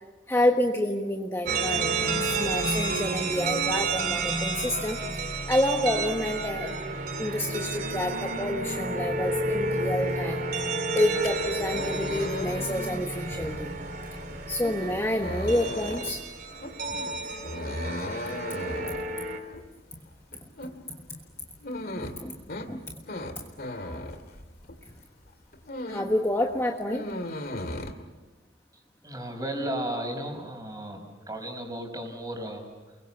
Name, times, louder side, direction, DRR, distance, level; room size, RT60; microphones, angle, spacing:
voice 1, 0.3-6.8 7.2-13.7 14.5-16.2 16.9-17.0 22.2-22.3 22.7-22.8 23.8-24.0 25.9-27.1, left 1 dB, 15° left, 2 dB, 1.4 m, -28 dB
sound 1, 1.5-19.4, right 3 dB, 55° right, 3.8 m, -31 dB
sound 2, 10.8-24.9 25.3-26.2 26.5-27.9, left 1 dB, 55° left, 2.3 m, -37 dB
voice 2, 28.7-33.0, right 1 dB, 20° right, 3 dB, 5.2 m, -35 dB
30.0 x 22.5 x 7.0 m, 1.2 s
head